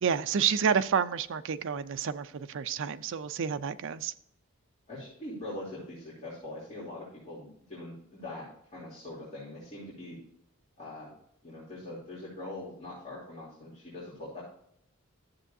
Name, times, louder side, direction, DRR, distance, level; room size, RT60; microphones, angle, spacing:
voice 1, 0.0-4.1, right 7 dB, 60° right, 0.5 m, -29 dB
voice 2, 4.9-8.5 8.7-10.2 10.8-11.1 11.4-14.4, left 1 dB, 35° left, 3.1 m, -42 dB
12.5 x 7.1 x 2.7 m
head